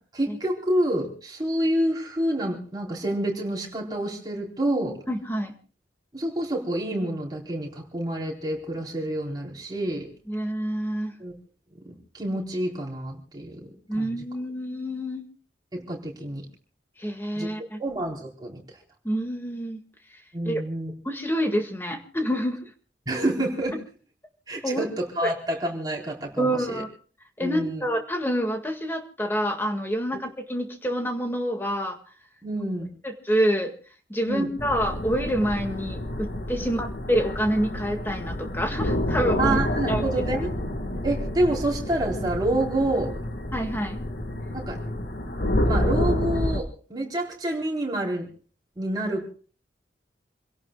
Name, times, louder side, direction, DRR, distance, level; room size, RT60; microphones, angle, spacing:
voice 1, 0.1-5.0 6.1-10.1 11.2-11.3 11.8-13.7 14.0-14.2 15.7-16.5 17.3-17.5 17.8-18.6 20.3-20.9 23.1-23.8 24.5-26.8 27.4-27.8 32.4-32.9 34.2-34.5 39.4-40.6 41.0-43.2 44.5-44.8 45.6-48.3 48.8-49.3, right 1 dB, 25° right, -2 dB, 4.1 m, -28 dB
voice 2, 5.1-5.5 10.3-11.1 13.9-15.2 17.0-17.8 19.0-19.8 20.5-20.6 21.0-22.7 24.6-24.9 25.2-25.3 26.4-26.9 27.4-32.0 33.0-33.7 34.1-39.6 39.9-40.0 43.5-44.0, equal, 10° left, 4 dB, 1.9 m, -27 dB
sound 1, 34.6-46.6, left 1 dB, 60° left, 1.6 m, -28 dB
28.5 x 17.0 x 2.3 m, 0.40 s
head